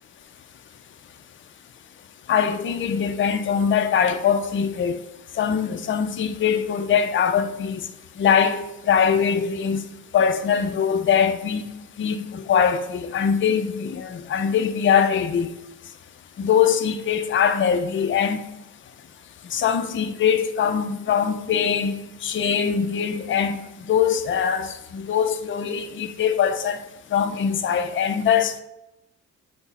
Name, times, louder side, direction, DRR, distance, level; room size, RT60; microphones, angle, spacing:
voice 1, 2.3-4.9 5.4-7.8 8.2-9.8 10.1-11.6 12.0-15.5 16.4-18.4 19.5-21.9 22.2-23.6 23.8-26.8 27.1-28.6, left 7 dB, 40° left, 0.5 m, -22 dB
5.8 x 2.1 x 4.1 m
cardioid pair, 90°, 30 cm